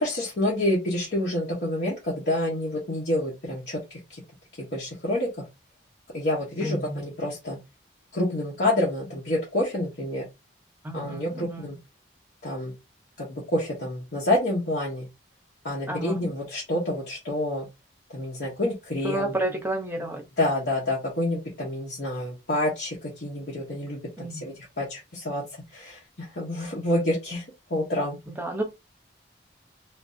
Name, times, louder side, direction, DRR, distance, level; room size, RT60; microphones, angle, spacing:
voice 1, 0.0-4.2 4.6-5.3 6.1-7.6 8.1-10.2 10.9-11.8 12.4-12.7 13.2-15.1 15.6-17.7 18.1-19.3 20.4-25.4 25.7-27.4 27.7-28.2, left 1 dB, 65° left, 1.0 m, -28 dB
voice 2, 6.6-7.0 10.8-11.7 15.9-16.2 19.0-20.2 24.2-24.4 28.3-28.6, right 1 dB, 10° right, 0.8 m, -31 dB
3.3 x 2.6 x 2.7 m
head